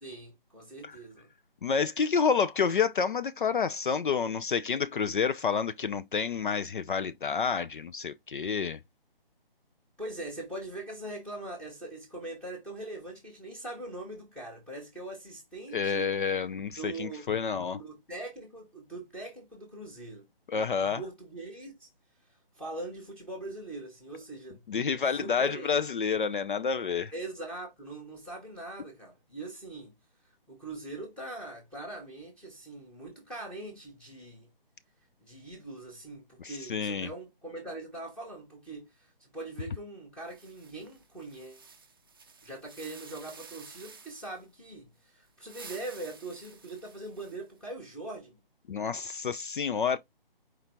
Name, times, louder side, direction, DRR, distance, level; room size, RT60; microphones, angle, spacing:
voice 1, 0.0-1.3 10.0-16.1 16.8-17.2 17.8-20.3 20.5-21.9 22.6-24.6 25.2-25.8 27.1-29.9 30.5-34.5 35.2-41.6 42.4-48.4, right 2 dB, 5° left, 0.8 m, -42 dB
voice 2, 1.6-8.8 15.7-17.8 20.5-21.0 24.7-27.1 36.4-37.1 48.7-50.0, left 6 dB, 55° left, 0.4 m, -29 dB
sound 1, 40.2-44.4 45.3-47.6, right 4 dB, 25° right, 0.5 m, -51 dB
4.5 x 3.7 x 2.9 m
figure-of-eight pair, 150°, 30 cm